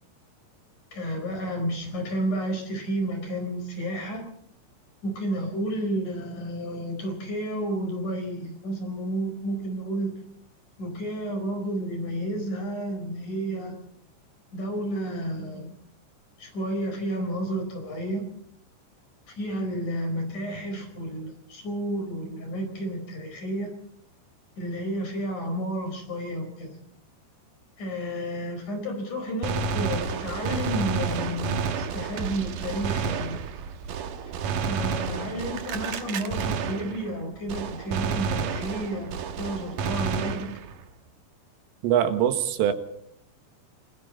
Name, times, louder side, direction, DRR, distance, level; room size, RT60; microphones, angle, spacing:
voice 1, 0.9-4.3 5.0-10.2 10.8-13.7 14.5-15.7 16.4-18.3 19.4-23.8 24.6-26.8 27.8-33.4 34.7-40.5, right 1 dB, 40° left, 4 dB, 5.7 m, -31 dB
Gunshot gunfire, 29.4-37.2 37.5-40.8, right 5 dB, 65° right, 2.1 m, -30 dB
voice 2, 41.8-42.7, right 10 dB, 90° right, 8 dB, 4.2 m, -22 dB
29.5 x 21.0 x 4.2 m, 0.65 s
omnidirectional pair, 5.6 m